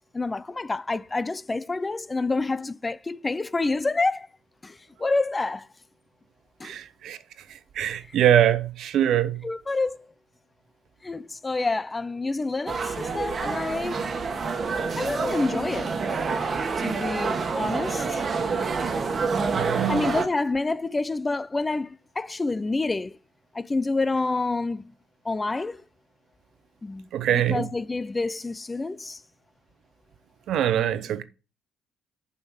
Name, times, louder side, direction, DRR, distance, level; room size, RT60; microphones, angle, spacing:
voice 1, 0.0-4.3 4.6-5.7 6.6-6.8 9.4-10.0 11.0-14.0 15.0-15.9 16.8-18.2 19.9-23.2 23.5-24.9 25.2-25.8 26.8-27.1 27.3-29.2, left 3 dB, 20° left, 0.4 m, -28 dB
voice 2, 6.6-7.2 7.5-9.4 19.5-20.1 27.1-27.7 30.5-31.2, right 11 dB, 70° right, 0.8 m, -23 dB
sound 1, 12.7-20.3, right 5 dB, 40° right, 1.4 m, -27 dB
7.1 x 5.4 x 6.4 m
cardioid pair, 90°, 0 cm